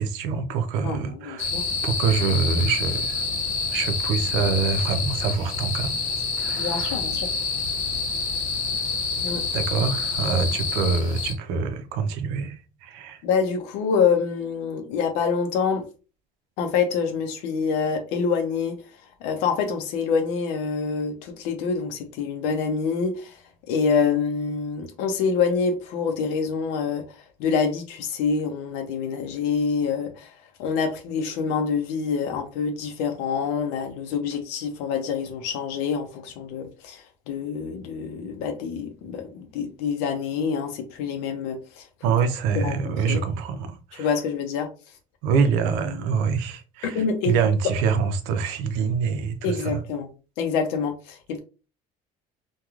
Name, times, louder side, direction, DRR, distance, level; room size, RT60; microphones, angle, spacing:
voice 1, 0.0-1.5 1.8-3.2 3.7-5.9 6.4-7.0 9.5-13.2 42.0-44.1 45.2-49.8, right 5 dB, 85° right, 0.5 m, -25 dB
voice 2, 0.8-1.6 6.5-7.3 9.2-9.5 13.2-15.9 16.6-18.8 19.2-23.4 23.7-30.3 30.6-41.9 42.5-43.2 43.9-44.7 45.9-46.0 46.8-47.7 49.4-50.1 50.4-51.4, left 5 dB, 85° left, 0.6 m, -26 dB
sound 1, 1.4-11.3, left 4 dB, 45° left, 1.0 m, -27 dB
3.0 x 2.2 x 2.3 m
cardioid pair, 120°, 17 cm